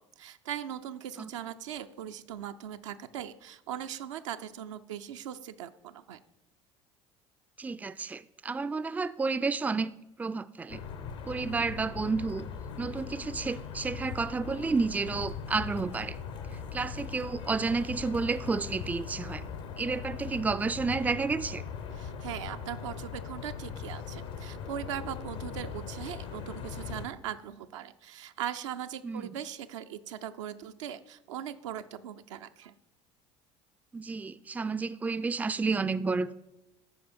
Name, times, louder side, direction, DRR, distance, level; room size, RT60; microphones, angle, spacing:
voice 1, 0.2-6.2 21.9-32.7, right 10 dB, 75° right, 0.5 m, -40 dB
voice 2, 7.6-9.9 10.2-10.8 11.3-12.5 12.8-16.2 16.7-19.4 19.8-21.6 29.0-29.4 33.9-36.3, right 4 dB, 10° right, 0.4 m, -31 dB
sound 1, 10.7-27.1, left 6 dB, 70° left, 1.0 m, -40 dB
13.5 x 4.9 x 4.3 m
hypercardioid pair, 65°, 16 cm